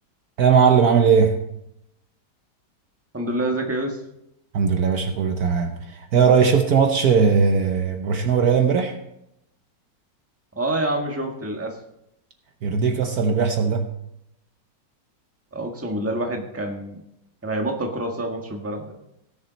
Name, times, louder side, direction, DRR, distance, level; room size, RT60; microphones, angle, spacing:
voice 1, 0.4-1.4 4.5-9.0 12.6-13.9, right 6 dB, 60° right, 1.3 m, -19 dB
voice 2, 3.1-4.0 10.5-11.8 15.5-17.0 17.4-19.0, right 1 dB, 10° right, 1.3 m, -27 dB
17.5 x 7.1 x 4.1 m
omnidirectional pair, 2.0 m